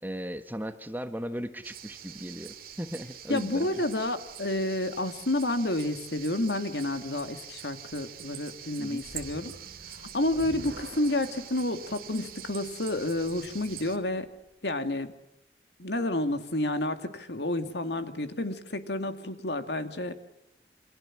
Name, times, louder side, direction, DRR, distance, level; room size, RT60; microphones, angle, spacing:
voice 1, 0.0-3.8 8.8-9.1, equal, 10° right, 8 dB, 1.4 m, -37 dB
sound 1, 1.6-14.0, right 10 dB, 55° right, 2.4 m, -45 dB
voice 2, 3.3-9.5 10.1-14.3 14.6-15.1 15.8-20.2, left 1 dB, 75° left, 8 dB, 2.4 m, -30 dB
sound 2, 9.0-14.3, right 1 dB, 85° right, 2.6 m, -48 dB
28.0 x 25.5 x 7.4 m, 0.84 s
head